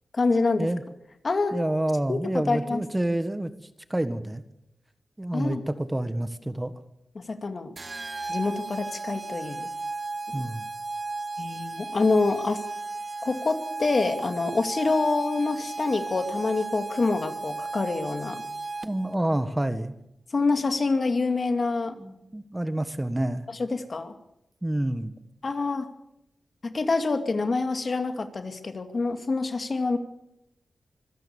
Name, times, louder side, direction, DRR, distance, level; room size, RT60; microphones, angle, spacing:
voice 1, 0.1-0.7 1.2-1.6 2.1-2.2 2.5-2.8 5.3-5.6 7.2-7.7 8.3-9.7 10.3-10.4 11.4-12.6 13.2-18.4 20.3-22.0 23.6-24.1 25.4-25.9 26.6-30.0, left 3 dB, 50° left, 7 dB, 2.4 m, -26 dB
voice 2, 1.5-3.5 3.9-4.4 5.2-6.7 10.3-10.7 18.8-19.9 22.0-23.4 24.6-25.1, right 1 dB, 15° right, 11 dB, 1.6 m, -28 dB
sound 1, 7.8-19.2, right 3 dB, 40° right, 1.4 m, -35 dB
25.5 x 17.0 x 7.2 m, 0.83 s
cardioid pair, 75°, 0 cm